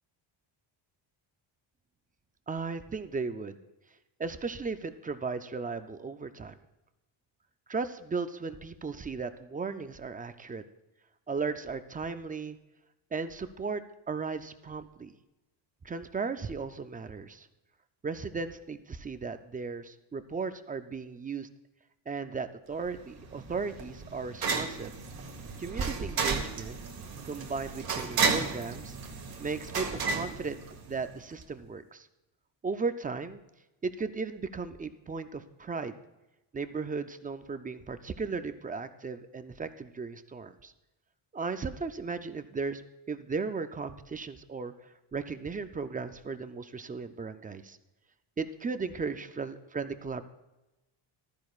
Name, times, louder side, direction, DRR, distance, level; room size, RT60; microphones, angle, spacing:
voice 1, 2.5-3.6 4.2-6.5 7.7-10.6 11.3-12.6 13.1-15.2 15.8-17.5 18.0-21.5 22.1-24.9 25.6-26.8 27.2-29.0 29.4-30.6 30.9-32.1 32.6-33.4 33.8-36.0 36.5-40.7 41.3-42.8 43.1-47.8 48.4-50.2, right 4 dB, 20° right, 9 dB, 0.3 m, -36 dB
sound 1, 22.8-31.2, right 4 dB, 45° right, 1.4 m, -33 dB
15.0 x 13.5 x 2.4 m, 0.99 s
cardioid pair, 150°, 48 cm